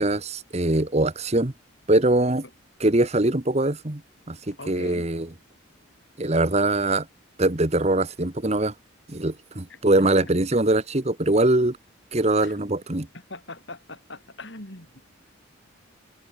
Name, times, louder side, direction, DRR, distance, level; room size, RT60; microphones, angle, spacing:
voice 1, 0.0-1.5 1.9-2.4 2.8-4.0 4.3-5.3 6.2-7.1 7.4-8.7 9.1-11.8 12.1-13.1, right 2 dB, 30° right, 1.3 m, -22 dB
voice 2, 4.6-5.1 6.6-7.0 9.7-10.3 12.4-12.6 13.1-15.1, left 2 dB, 55° left, 5.0 m, -42 dB
head